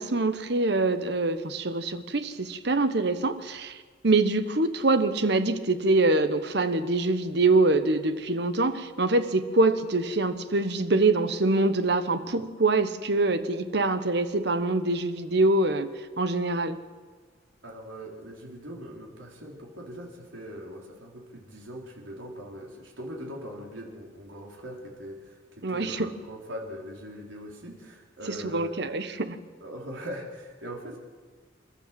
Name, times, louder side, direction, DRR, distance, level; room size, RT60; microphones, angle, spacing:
voice 1, 0.0-3.8 4.0-16.8 25.6-26.1 28.3-29.4, right 2 dB, 60° right, 10 dB, 1.1 m, -24 dB
voice 2, 17.6-28.7 29.6-31.0, equal, 85° right, -2 dB, 4.2 m, -41 dB
27.5 x 12.5 x 7.7 m, 1.5 s
head